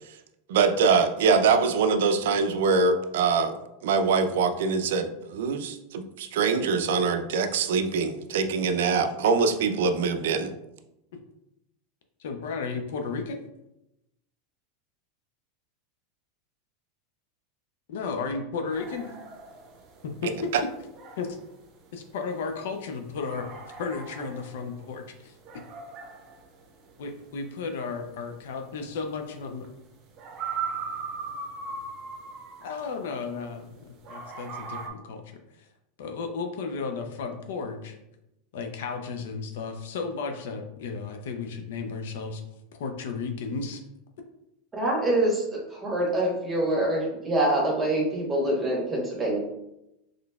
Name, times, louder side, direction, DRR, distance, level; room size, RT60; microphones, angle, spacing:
voice 1, 0.5-3.5 3.8-10.5, right 5 dB, 80° right, 8 dB, 0.4 m, -23 dB
voice 2, 12.2-13.4 17.9-19.1 20.0-20.5 21.2-21.4 21.9-23.5 23.8-25.4 27.0-29.6 32.6-35.7 36.0-38.0 38.5-42.4 42.8-43.8, left 4 dB, 75° left, 4 dB, 0.4 m, -34 dB
sound 1, 18.7-33.7 34.0-34.9, right 5 dB, 45° right, 0.7 m, -39 dB
voice 3, 44.7-45.4 45.7-49.4, right 1 dB, 20° right, -3 dB, 1.2 m, -25 dB
4.0 x 3.1 x 2.3 m, 0.87 s
supercardioid pair, 120°, 0 cm